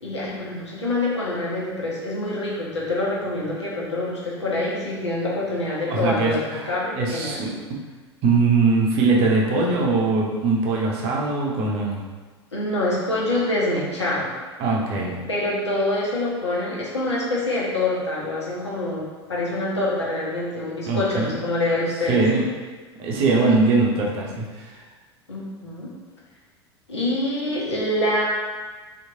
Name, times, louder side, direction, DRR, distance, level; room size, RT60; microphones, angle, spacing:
voice 1, 0.0-7.4 12.5-14.3 15.3-22.2 25.3-25.9 26.9-28.2, left 2 dB, 80° left, -6 dB, 0.8 m, -25 dB
voice 2, 5.9-6.6 6.9-7.6 8.2-12.0 14.6-15.3 20.9-21.3 22.1-22.4 23.0-24.8, right 3 dB, 45° right, -2 dB, 0.7 m, -21 dB
2.9 x 2.5 x 2.7 m, 1.4 s
figure-of-eight pair, 80°, 14 cm